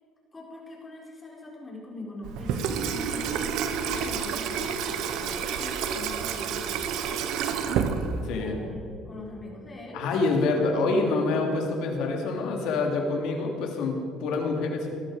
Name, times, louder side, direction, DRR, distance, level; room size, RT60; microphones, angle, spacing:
voice 1, 0.3-3.3 3.7-7.3 8.3-10.7, left 2 dB, 20° left, -2 dB, 4.9 m, -42 dB
Water tap faucet / Sink (filling or washing), 2.2-8.5, right 7 dB, 80° right, 1.4 m, -29 dB
voice 2, 8.2-8.6 9.9-14.9, left 3 dB, 80° left, 2 dB, 3.0 m, -26 dB
19.0 x 13.0 x 5.1 m, 2.5 s
cardioid pair, 120°, 0 cm